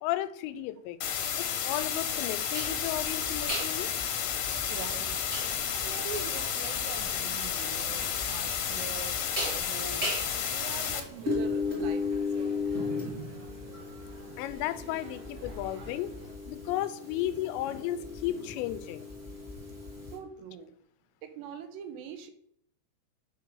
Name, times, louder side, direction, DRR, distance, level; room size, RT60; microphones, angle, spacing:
voice 1, 0.0-1.0 1.4-3.9 14.4-16.1 16.5-19.1, left 13 dB, 90° left, 12 dB, 2.8 m, -34 dB
sound 1, 1.0-11.0, left 8 dB, 70° left, 2.0 m, -32 dB
sound 2, 2.4-16.3, right 3 dB, 60° right, 3.1 m, -52 dB
sound 3, 2.5-20.2, left 3 dB, 25° right, 1.9 m, -36 dB
voice 2, 4.7-5.2 5.7-10.1 10.4-12.5 20.1-20.8 21.2-22.3, right 8 dB, 80° right, 8 dB, 3.1 m, -43 dB
9.2 x 4.6 x 6.3 m, 0.67 s
omnidirectional pair, 5.1 m